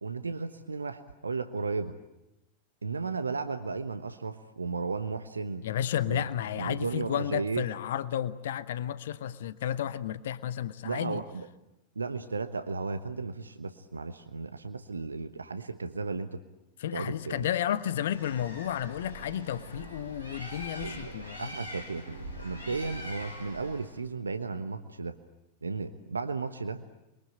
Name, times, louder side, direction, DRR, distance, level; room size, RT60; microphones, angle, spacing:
voice 1, 0.0-1.9 2.8-5.6 6.1-6.3 6.6-7.6 10.8-11.5 11.9-16.4 16.9-17.5 20.8-25.2 25.6-26.8, right 4 dB, 75° right, 9 dB, 1.1 m, -34 dB
voice 2, 5.6-11.2 16.8-21.5, left 10 dB, 60° left, 15 dB, 0.9 m, -32 dB
Bird, 17.9-24.0, equal, 90° left, 5.6 m, -43 dB
28.5 x 23.0 x 8.8 m, 0.93 s
figure-of-eight pair, 90°, 0 cm